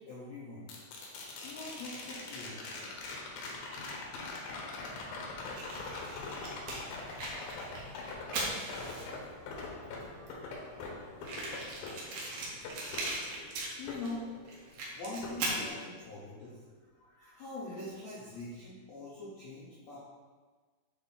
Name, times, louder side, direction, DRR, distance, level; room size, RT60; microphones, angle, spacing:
voice 1, 0.1-0.7 1.4-2.6 9.5-9.6 10.0-10.3 13.4-13.5 13.8-14.3 14.7-16.6 17.0-20.0, left 2 dB, 90° left, -9 dB, 1.5 m, -43 dB
sound 1, 0.7-14.8 15.2-16.3 18.5-18.6, left 3 dB, 70° left, 2.2 m, -43 dB
Fire, 5.5-9.3 10.0-10.1 10.3-10.4 10.6-10.7 11.2-14.1 14.5-15.7, right 2 dB, 70° right, 2.5 m, -39 dB
7.7 x 3.4 x 4.2 m, 1.4 s
omnidirectional pair, 4.8 m